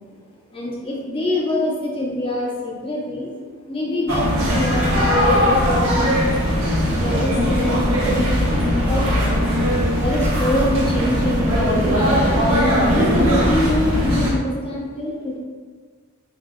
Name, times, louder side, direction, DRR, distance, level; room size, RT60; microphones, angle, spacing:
voice 1, 0.5-3.4 3.7-6.4 6.8-9.7 10.0-15.4, left 1 dB, 25° left, -3 dB, 0.9 m, -25 dB
sound 1, 4.1-14.3, equal, 80° right, 1.3 m, -19 dB
5.1 x 3.9 x 2.4 m, 1.5 s
head